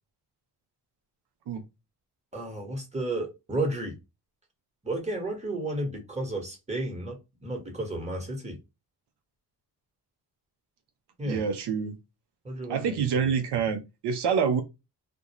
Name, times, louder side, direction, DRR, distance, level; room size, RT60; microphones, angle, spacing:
voice 1, 2.3-3.9 4.8-8.6 11.2-11.4 12.4-13.3, right 2 dB, 15° right, 1.1 m, -32 dB
voice 2, 11.2-12.0 12.7-14.6, right 6 dB, 75° right, 0.6 m, -27 dB
2.4 x 2.2 x 2.8 m
cardioid pair, 75°, 41 cm